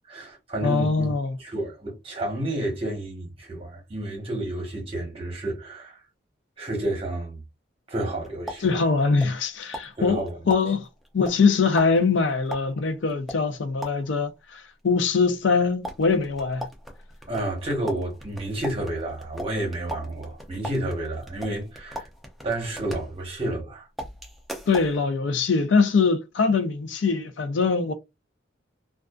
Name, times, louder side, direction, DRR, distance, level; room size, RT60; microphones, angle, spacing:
voice 1, 0.1-1.1 1.4-6.0 6.6-7.4 7.9-8.9 10.0-10.4 17.3-22.1 22.4-23.9, right 1 dB, 30° right, 1.0 m, -30 dB
voice 2, 0.6-1.3 8.6-10.9 11.1-16.6 24.7-27.9, left 4 dB, 65° left, 0.4 m, -23 dB
sound 1, 8.0-9.5 9.7-14.3 15.8-23.6 24.0-25.0, equal, ahead, 0.4 m, -39 dB
2.4 x 2.3 x 2.3 m
head